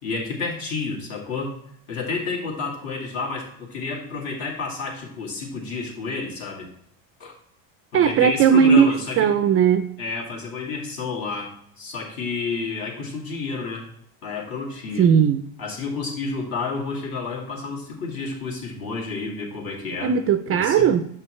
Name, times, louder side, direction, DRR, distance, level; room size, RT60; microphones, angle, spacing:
voice 1, 0.0-1.5 1.9-6.7 7.2-7.3 7.9-9.3 10.0-13.9 14.2-15.1 15.6-20.1 20.5-20.9, left 4 dB, 55° left, -2 dB, 2.2 m, -30 dB
voice 2, 7.9-9.9 15.0-15.4 20.0-21.1, right 7 dB, 35° right, 10 dB, 0.4 m, -18 dB
7.2 x 5.5 x 3.1 m, 0.69 s
supercardioid pair, 110°, 42 cm